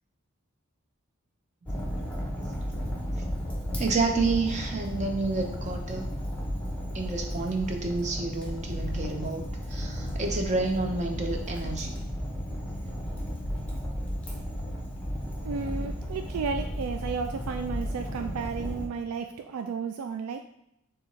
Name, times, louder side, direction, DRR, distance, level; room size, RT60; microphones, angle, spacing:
Fire, 1.7-18.9, equal, 5° left, 0.7 m, -34 dB
voice 1, 1.7-2.7 3.8-6.1 6.9-12.0, right 3 dB, 30° right, 3 dB, 0.6 m, -30 dB
voice 2, 15.4-20.4, right 5 dB, 90° right, 6 dB, 0.3 m, -33 dB
6.7 x 2.4 x 3.1 m, 0.81 s
head